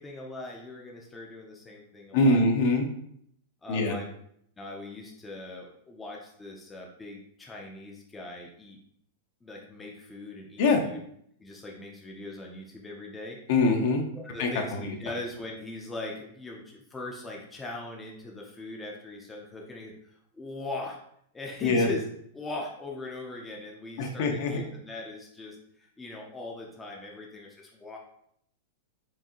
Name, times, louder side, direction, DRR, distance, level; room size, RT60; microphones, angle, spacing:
voice 1, 0.0-2.4 3.6-4.1 4.6-8.8 9.4-11.0 11.4-13.4 14.1-19.9 20.3-21.0 21.3-22.1 22.3-28.0, left 2 dB, 10° left, -1 dB, 0.5 m, -40 dB
voice 2, 2.1-2.9 3.7-3.9 10.6-10.8 13.5-14.0 14.4-14.9 21.6-21.9 24.0-24.6, left 2 dB, 55° left, 4 dB, 0.7 m, -23 dB
4.6 x 2.7 x 2.9 m, 0.69 s
supercardioid pair, 160°, 0 cm